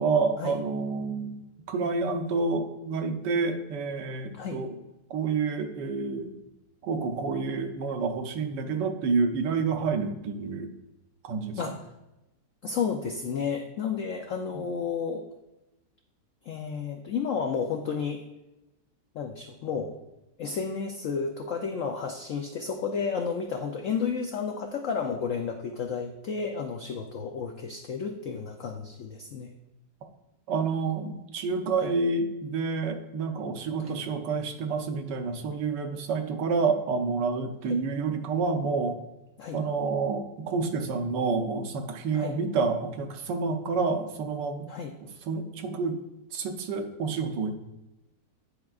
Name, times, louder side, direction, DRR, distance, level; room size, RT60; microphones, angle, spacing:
voice 1, 0.0-4.8 5.1-6.4 6.8-10.7 11.2-11.6 14.5-14.6 30.5-39.0 39.5-44.7 45.0-46.0 46.3-47.5, right 4 dB, 75° right, 5 dB, 1.3 m, -29 dB
voice 2, 12.6-15.2 16.4-18.2 19.1-20.0 20.4-29.5 31.8-31.9 33.9-34.0 37.7-37.8 39.4-39.6 42.1-42.3 44.7-44.9, left 6 dB, 80° left, 3 dB, 0.7 m, -32 dB
10.0 x 4.6 x 2.4 m, 0.96 s
omnidirectional pair, 1.9 m